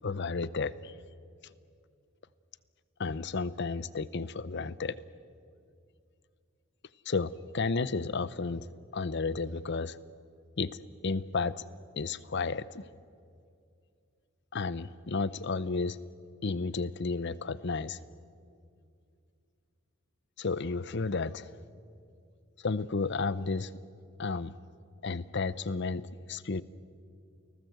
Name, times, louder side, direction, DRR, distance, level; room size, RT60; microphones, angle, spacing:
voice 1, 0.0-0.9 3.0-5.0 7.1-8.7 8.9-10.0 10.6-10.8 11.0-11.6 12.0-12.9 14.5-16.0 16.4-18.0 20.4-21.5 22.6-23.7 24.2-24.5 25.0-26.0 26.3-26.6, left 4 dB, 55° left, 17 dB, 0.7 m, -32 dB
30.0 x 19.5 x 7.9 m, 2.4 s
head